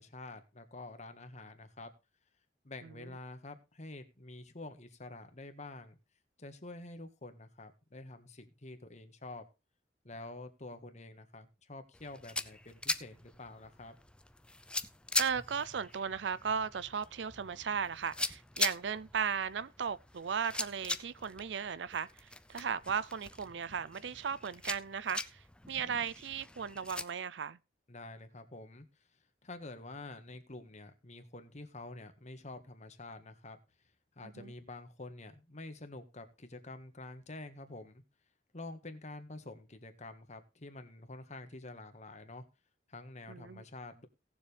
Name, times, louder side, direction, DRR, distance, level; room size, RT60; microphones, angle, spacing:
voice 1, 0.0-1.9 2.6-6.0 6.4-9.4 10.0-14.0 27.9-29.1 29.4-33.6 34.1-38.0 38.5-42.4 42.9-44.1, left 2 dB, 40° left, 1.6 m, -48 dB
sound 1, 11.9-27.0, left 2 dB, 5° left, 0.5 m, -41 dB
voice 2, 15.2-25.4 25.7-27.6 34.4-34.5 43.3-43.6, right 7 dB, 75° right, 0.5 m, -36 dB
18.0 x 7.1 x 3.3 m
head